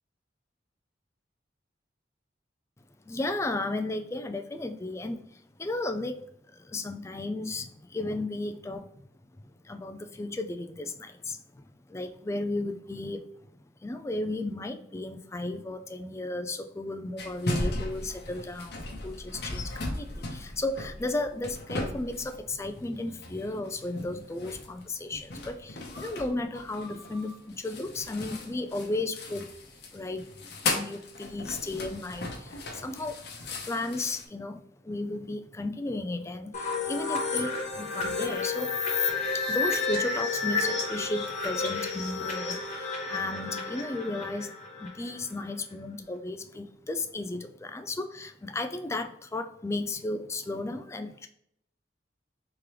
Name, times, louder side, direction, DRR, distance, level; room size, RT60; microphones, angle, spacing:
voice 1, 3.1-8.9 9.4-13.3 13.8-29.5 29.9-38.8 39.3-51.3, left 2 dB, 15° left, 7 dB, 0.3 m, -34 dB
sound 1, 17.2-22.8 23.1-34.3, left 2 dB, 60° left, 0.8 m, -37 dB
sound 2, 36.5-45.1, left 4 dB, 40° left, 1.3 m, -31 dB
3.6 x 3.2 x 3.1 m, 0.73 s
head